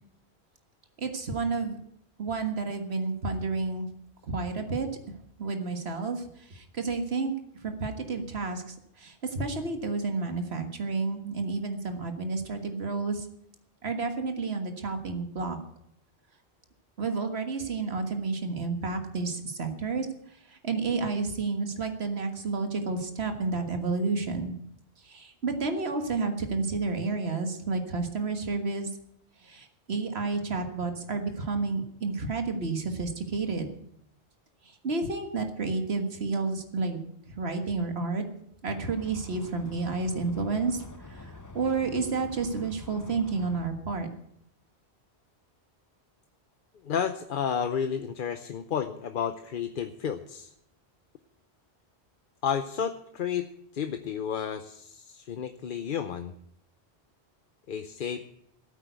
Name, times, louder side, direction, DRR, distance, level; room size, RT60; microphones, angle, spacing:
voice 1, 1.0-1.8 2.2-3.9 4.2-4.9 5.4-6.2 6.5-7.3 7.6-13.3 13.8-15.6 17.0-20.1 20.5-24.5 25.1-28.9 29.4-33.7 34.8-37.0 37.4-38.2 38.6-40.8 41.1-44.1, right 4 dB, 75° right, 6 dB, 1.9 m, -30 dB
sound 1, 38.7-43.7, left 2 dB, 20° left, 0.7 m, -46 dB
voice 2, 46.8-50.5 52.4-56.3 57.7-58.3, left 7 dB, 55° left, 9 dB, 0.8 m, -31 dB
14.5 x 8.7 x 8.0 m, 0.72 s
omnidirectional pair, 1.1 m